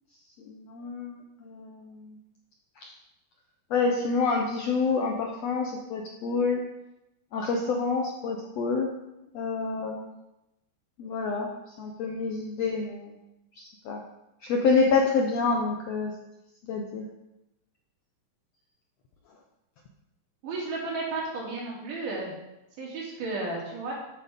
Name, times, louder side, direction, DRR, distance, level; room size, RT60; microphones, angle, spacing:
voice 1, 0.5-2.1 2.8-2.9 3.7-6.7 7.3-8.9 9.3-10.1 11.0-11.5 11.8-13.2 13.6-14.0 14.4-16.1 16.7-17.1, left 4 dB, 75° left, 1 dB, 1.5 m, -27 dB
voice 2, 20.4-22.3 22.8-23.9, right 3 dB, 65° right, -4 dB, 4.1 m, -33 dB
11.0 x 9.0 x 3.6 m, 0.92 s
omnidirectional pair, 4.1 m